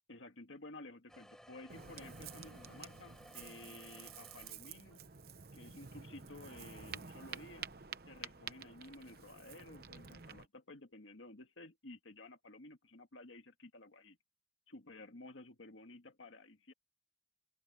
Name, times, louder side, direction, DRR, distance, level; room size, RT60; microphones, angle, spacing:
voice 1, 0.1-5.0 5.5-7.7 8.1-14.2 14.7-16.7, left 2 dB, 90° left, 1.9 m, -54 dB
sound 1, 1.1-8.1, equal, 5° left, 4.2 m, -61 dB
Ocean, 1.7-10.5, right 7 dB, 55° right, 0.9 m, -50 dB
open air
head